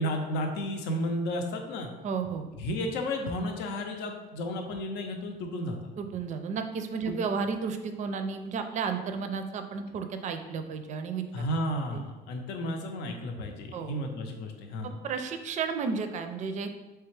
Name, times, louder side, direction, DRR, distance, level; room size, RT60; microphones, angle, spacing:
voice 1, 0.0-1.9 2.6-5.8 7.1-7.2 11.3-14.9, equal, 85° left, 4 dB, 0.6 m, -32 dB
voice 2, 2.0-2.5 6.0-11.4 11.9-12.0 13.7-13.9 14.8-16.7, right 5 dB, 45° right, 7 dB, 0.4 m, -33 dB
3.4 x 3.3 x 3.2 m, 1.2 s
cardioid pair, 110°, 17 cm